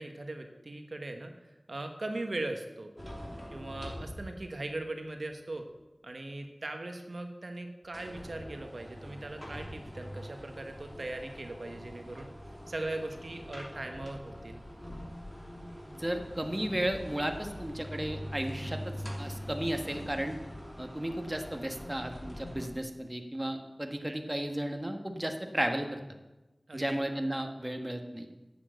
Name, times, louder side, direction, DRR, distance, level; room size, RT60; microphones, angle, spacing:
voice 1, 0.0-1.3 1.7-2.9 3.5-5.6 6.0-12.3 12.7-14.6 24.1-24.2 26.7-27.0, right 2 dB, 75° right, 5 dB, 1.2 m, -39 dB
sound 1, 3.0-4.8 5.2-5.3 7.8-22.7, equal, 15° left, 3.1 m, -43 dB
voice 2, 15.9-18.9 19.2-20.3 20.8-26.0 26.7-28.3, right 1 dB, 20° right, 5 dB, 1.3 m, -34 dB
10.0 x 7.6 x 7.9 m, 1.1 s
wide cardioid pair, 50°, 0 cm